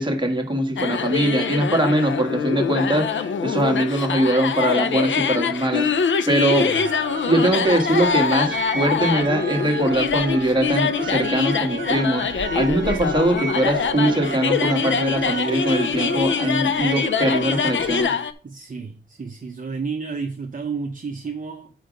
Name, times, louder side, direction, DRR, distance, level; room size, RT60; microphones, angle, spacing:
voice 1, 0.0-6.7 7.3-18.2, right 1 dB, 25° right, 1.6 m, -22 dB
sound 1, 0.8-18.3, left 6 dB, 80° left, 0.6 m, -24 dB
voice 2, 6.5-6.9 18.4-21.7, right 5 dB, 45° right, 0.8 m, -31 dB
sound 2, 6.7-18.0, right 4 dB, 65° right, 1.2 m, -33 dB
7.6 x 5.1 x 5.2 m
wide cardioid pair, 80°, 20 cm